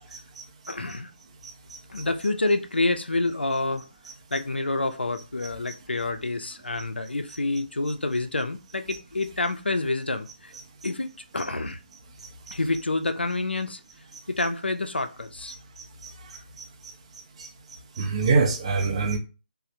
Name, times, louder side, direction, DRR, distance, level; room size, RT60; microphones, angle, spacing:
voice 1, 0.7-1.1 1.9-3.9 4.3-10.5 10.8-11.1 11.3-11.8 12.5-13.8 14.3-15.5, left 2 dB, 80° left, 8 dB, 0.4 m, -28 dB
voice 2, 18.0-19.2, right 4 dB, 35° right, 4 dB, 0.5 m, -24 dB
3.1 x 2.0 x 2.6 m, 0.32 s
figure-of-eight pair, 150°, 6 cm